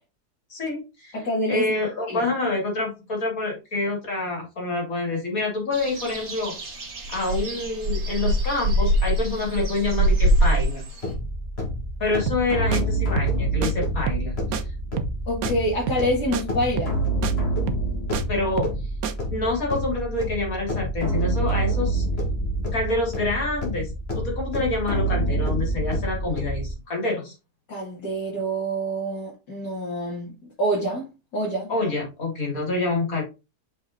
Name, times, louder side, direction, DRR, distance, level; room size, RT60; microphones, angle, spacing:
voice 1, 0.5-1.2 1.5-6.6 7.1-10.8 12.0-14.6 18.3-18.7 19.3-22.1 22.7-27.3 31.7-33.2, left 2 dB, 55° left, 3.8 m, -27 dB
voice 2, 1.1-1.7 2.1-2.3 15.3-16.9 27.7-30.3 30.6-31.7, right 1 dB, 85° left, 3.1 m, -26 dB
sound 1, 5.7-11.1, right 1 dB, 45° right, 2.0 m, -23 dB
sound 2, 11.0-26.7, right 1 dB, 40° left, 2.5 m, -27 dB
sound 3, 12.3-12.5 12.7-12.8 13.2-13.4 13.6-13.7 14.1-14.3 14.5-14.6 15.0-15.2 15.4-15.5 15.9-16.1 16.3-16.4 16.8-17.0 17.2-17.3 17.7-18.2 18.6-18.8 19.0-19.1, right 8 dB, 65° right, 1.1 m, -28 dB
6.1 x 5.4 x 3.9 m
omnidirectional pair, 1.7 m